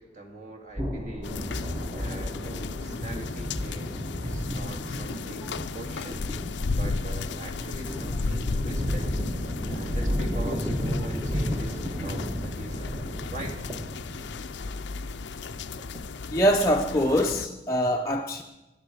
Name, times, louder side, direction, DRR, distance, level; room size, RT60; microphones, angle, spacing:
voice 1, 0.0-1.4 1.9-6.2 6.7-9.1 9.7-12.9 13.3-13.7, right 2 dB, 40° right, 1.9 m, -42 dB
sound 1, 0.8-16.9, equal, 20° right, 1.2 m, -33 dB
sound 2, 1.2-17.5, left 4 dB, 75° left, 0.5 m, -35 dB
voice 2, 16.3-18.4, equal, 15° left, 0.6 m, -23 dB
14.5 x 10.5 x 4.9 m
head